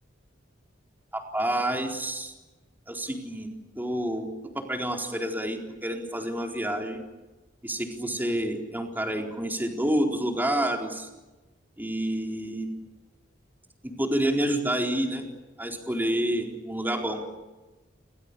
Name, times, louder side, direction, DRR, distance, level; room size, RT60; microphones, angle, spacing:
voice 1, 1.1-2.3 2.9-3.5 3.8-4.3 4.5-7.0 7.6-11.1 11.8-12.7 13.8-15.3 15.6-17.2, right 1 dB, 10° right, 2 dB, 4.2 m, -28 dB
29.5 x 25.5 x 7.0 m, 1.1 s
head